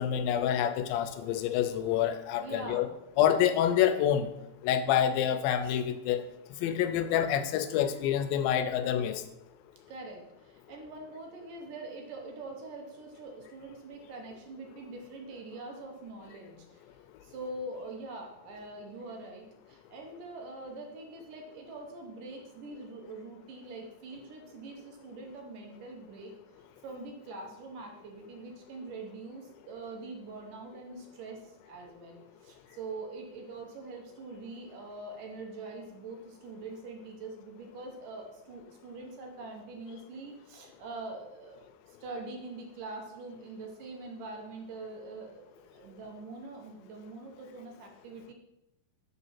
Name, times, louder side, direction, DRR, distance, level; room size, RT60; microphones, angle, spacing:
voice 1, 0.0-2.9 3.2-4.3 4.6-6.2 6.6-9.2, left 10 dB, 90° left, 9 dB, 2.4 m, -27 dB
voice 2, 2.4-2.9 9.9-48.3, right 2 dB, 70° right, 1 dB, 2.6 m, -44 dB
7.0 x 4.1 x 5.8 m, 0.88 s
omnidirectional pair, 4.1 m